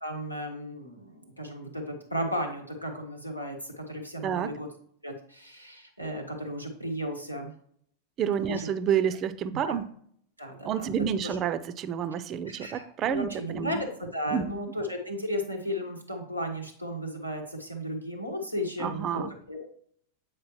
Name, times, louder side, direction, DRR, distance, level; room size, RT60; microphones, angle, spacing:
voice 1, 0.0-4.7 5.0-7.5 8.5-8.7 9.6-9.8 10.4-10.9 11.2-11.4 12.5-19.7, equal, 90° left, 1.2 m, -35 dB
voice 2, 4.2-4.6 8.2-9.9 10.6-13.8 14.3-14.5 18.8-19.3, right 8 dB, 30° right, 0.4 m, -29 dB
8.2 x 4.9 x 3.0 m
figure-of-eight pair, 90°, 0 cm